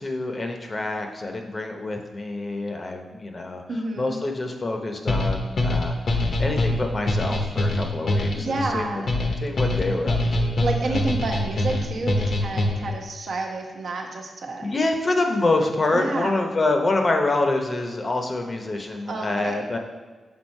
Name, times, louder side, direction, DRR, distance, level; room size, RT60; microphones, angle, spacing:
voice 1, 0.0-3.6 4.0-9.0 9.4-10.7 14.6-19.8, left 2 dB, 35° left, 3 dB, 0.8 m, -26 dB
voice 2, 3.7-4.2 8.3-9.1 10.6-14.7 15.9-16.5 18.9-19.7, right 2 dB, 65° right, 1 dB, 1.0 m, -30 dB
sound 1, 5.1-13.0, left 1 dB, 60° left, 0.9 m, -24 dB
6.2 x 4.0 x 5.4 m, 1.3 s
wide cardioid pair, 115°, 0 cm